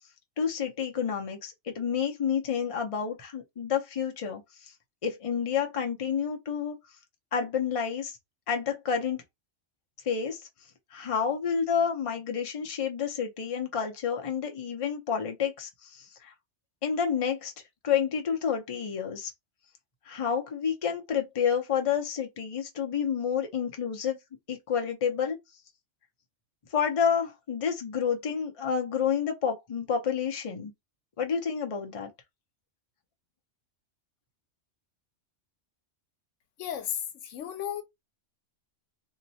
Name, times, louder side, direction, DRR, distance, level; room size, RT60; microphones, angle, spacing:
voice 1, 0.4-4.7 5.0-6.8 7.3-8.2 8.5-9.2 10.0-10.4 10.9-16.3 16.8-17.5 17.8-19.3 20.1-24.2 24.5-25.4 26.7-30.7 31.2-32.1, left 7 dB, 35° left, 0.7 m, -29 dB
voice 2, 36.6-37.8, left 9 dB, 85° left, 1.0 m, -34 dB
2.9 x 2.2 x 4.0 m
omnidirectional pair, 1.2 m